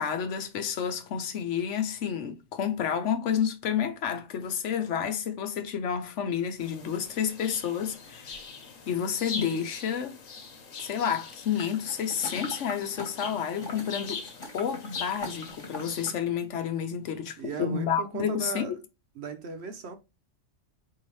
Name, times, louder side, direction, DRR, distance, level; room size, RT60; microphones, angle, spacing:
voice 1, 0.0-8.4 8.9-10.2 10.8-14.2 14.5-18.8, left 8 dB, 70° left, 1.0 m, -30 dB
sound 1, 6.6-16.1, left 5 dB, 85° left, 1.4 m, -42 dB
sound 2, 11.6-16.2 16.6-16.7, left 2 dB, 25° left, 1.3 m, -42 dB
voice 2, 17.4-18.8 19.2-19.9, right 6 dB, 60° right, 0.9 m, -36 dB
4.7 x 2.7 x 3.1 m
omnidirectional pair, 1.3 m